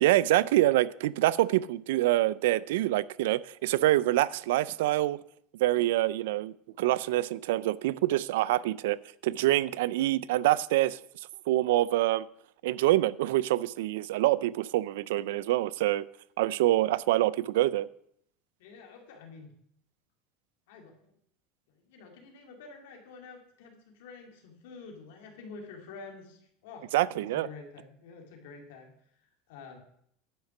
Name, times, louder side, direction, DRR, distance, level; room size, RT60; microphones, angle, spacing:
voice 1, 0.0-5.2 5.6-11.0 11.5-12.3 12.6-16.0 16.4-17.9 26.9-27.5, right 15 dB, 90° right, 0.3 m, -26 dB
voice 2, 18.6-19.5 20.7-21.2 21.7-28.9 29.5-29.8, left 4 dB, 85° left, 2.1 m, -48 dB
10.0 x 5.8 x 5.9 m
cardioid pair, 175°, 0 cm